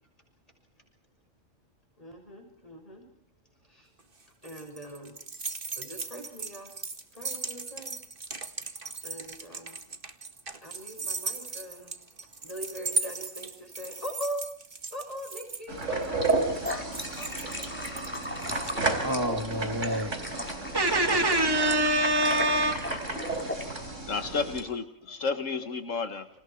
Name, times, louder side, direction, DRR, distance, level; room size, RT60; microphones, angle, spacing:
voice 1, 2.0-3.0 3.6-3.9 4.4-5.2 5.7-6.7 7.1-8.0 9.0-9.8 10.6-11.9 12.4-14.4 14.9-18.1 18.6-20.2 24.3-24.7 25.1-25.2, equal, 30° left, 6.4 m, -42 dB
sound 1, 4.0-18.2, right 3 dB, 45° right, 2.1 m, -37 dB
Coffee Maker, 15.7-24.6, right 3 dB, 70° right, 4.7 m, -33 dB
sound 2, 16.2-23.7, left 1 dB, 10° left, 4.7 m, -37 dB
voice 2, 18.4-20.2 20.7-22.8, right 1 dB, 20° right, 2.6 m, -26 dB
voice 3, 24.1-26.3, left 4 dB, 80° left, 1.9 m, -31 dB
30.0 x 27.5 x 4.6 m
omnidirectional pair, 1.3 m